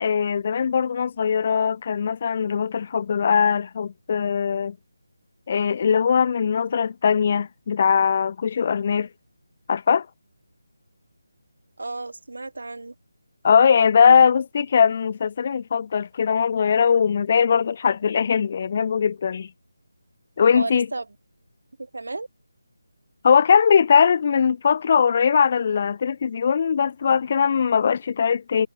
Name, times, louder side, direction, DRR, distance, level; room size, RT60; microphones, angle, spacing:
voice 1, 0.0-4.8 5.5-9.1 9.7-10.1 13.4-19.5 20.4-20.9 23.2-28.7, left 6 dB, 30° left, 0.4 m, -20 dB
voice 2, 11.8-12.9 20.5-21.1 21.8-22.3, right 2 dB, 80° right, 4.6 m, -33 dB
figure-of-eight pair, 175°, 0 cm